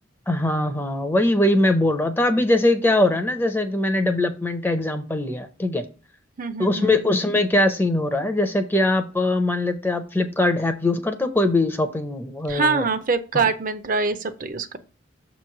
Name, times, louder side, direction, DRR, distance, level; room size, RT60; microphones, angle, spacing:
voice 1, 0.3-5.8 6.6-12.8 13.3-13.4, left 1 dB, 10° left, 7 dB, 0.5 m, -21 dB
voice 2, 6.4-7.0 12.5-14.8, right 4 dB, 40° right, 10 dB, 0.5 m, -24 dB
6.8 x 3.1 x 5.8 m, 0.36 s
head